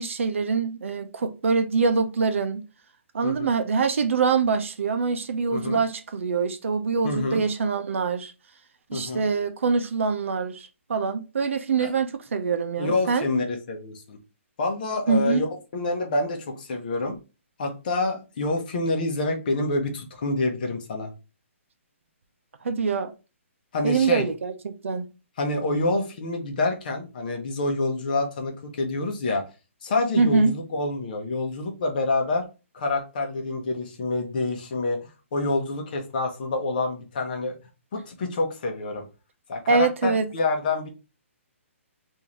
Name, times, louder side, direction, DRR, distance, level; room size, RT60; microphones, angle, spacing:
voice 1, 0.0-2.7 3.1-8.3 8.9-13.3 15.1-15.4 22.6-23.1 23.8-25.1 30.2-30.6 39.7-40.3, right 5 dB, 65° right, 0.6 m, -24 dB
voice 2, 3.2-3.5 5.5-5.8 7.0-7.4 8.9-9.3 11.8-11.9 12.8-14.2 14.6-17.2 17.6-21.1 23.7-24.2 25.4-29.4 29.8-32.4 32.7-35.0 35.3-37.5 37.9-39.0 39.5-40.9, left 2 dB, 40° left, 0.9 m, -27 dB
3.7 x 2.6 x 3.0 m
hypercardioid pair, 165°, 7 cm